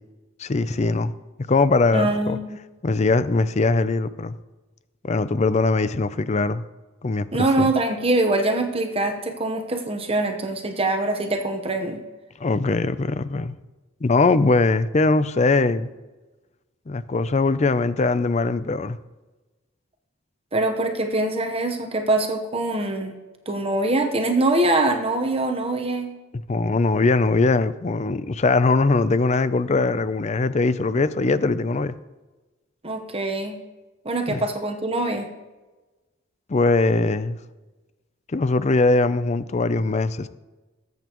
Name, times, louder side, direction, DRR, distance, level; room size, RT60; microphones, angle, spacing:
voice 1, 0.4-1.1 1.5-2.4 2.8-4.4 5.0-6.6 7.0-7.7 12.4-13.6 14.0-15.9 16.9-19.0 26.5-31.9 34.3-34.4 36.5-37.4 38.3-40.3, left 3 dB, 35° left, 0.5 m, -21 dB
voice 2, 1.9-2.6 7.3-12.0 20.5-23.1 23.5-26.1 32.8-33.6 34.0-35.3, right 2 dB, 30° right, 1.0 m, -23 dB
20.5 x 8.2 x 3.0 m
head